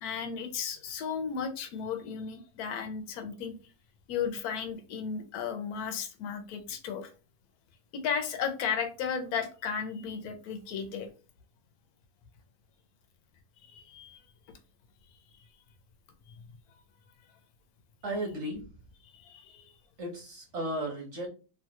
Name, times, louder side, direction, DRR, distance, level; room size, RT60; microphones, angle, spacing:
voice 1, 0.0-3.6 4.1-7.1 7.9-11.1 13.6-14.2 19.0-19.7, left 6 dB, 65° left, 6 dB, 1.0 m, -34 dB
voice 2, 18.0-18.7 20.0-21.3, right 1 dB, 55° right, 0 dB, 0.8 m, -35 dB
3.1 x 2.2 x 2.8 m, 0.33 s
omnidirectional pair, 2.0 m